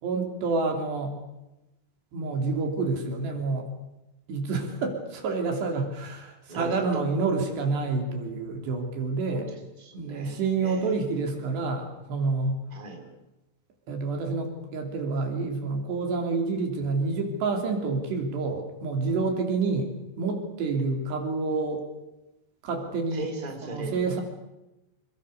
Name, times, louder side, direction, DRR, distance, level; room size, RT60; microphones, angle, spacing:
voice 1, 0.0-1.2 2.1-3.7 4.3-9.5 9.9-12.6 13.9-19.9 20.2-21.8 22.6-23.3 23.6-24.2, right 4 dB, 70° right, 3 dB, 5.4 m, -28 dB
voice 2, 6.5-7.0 9.3-10.9 12.7-13.0 23.1-23.9, right 2 dB, 10° right, 2 dB, 3.9 m, -38 dB
27.0 x 22.0 x 6.7 m, 0.96 s
omnidirectional pair, 5.1 m